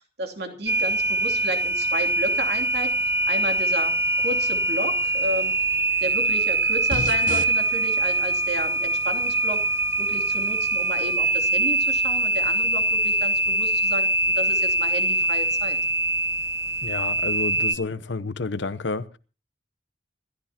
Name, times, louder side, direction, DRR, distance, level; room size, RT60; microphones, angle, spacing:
voice 1, 0.2-2.9 3.3-5.5 6.0-9.6 10.0-14.1 14.3-15.8, right 1 dB, 65° right, 2.9 m, -32 dB
sound 1, 0.7-17.7, right 2 dB, 15° right, 0.9 m, -23 dB
sound 2, 6.9-15.6, left 3 dB, 45° left, 1.0 m, -41 dB
voice 2, 16.8-19.2, left 3 dB, 80° left, 0.8 m, -30 dB
27.0 x 13.5 x 2.9 m
head